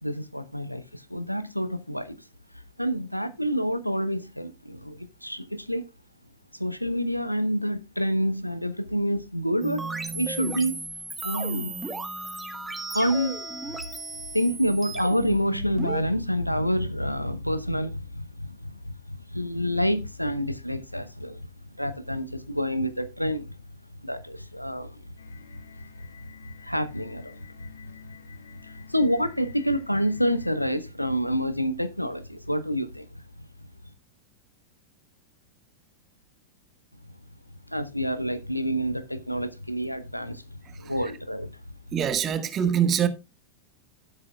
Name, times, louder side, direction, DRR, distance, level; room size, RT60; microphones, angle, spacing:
voice 1, 0.0-2.2 2.8-5.9 6.6-9.9 10.1-10.7 11.2-11.8 12.9-13.4 14.3-21.5 21.8-23.6 24.0-25.0 26.6-27.5 28.6-33.2 37.7-41.6, equal, 90° left, 0.8 m, -28 dB
sound 1, 9.6-16.0, right 3 dB, 10° right, 1.4 m, -35 dB
sound 2, 25.2-30.7, left 6 dB, 70° left, 1.6 m, -50 dB
voice 2, 40.6-41.1 41.9-43.1, right 8 dB, 30° right, 1.3 m, -25 dB
15.0 x 8.5 x 2.3 m
figure-of-eight pair, 90°, 0 cm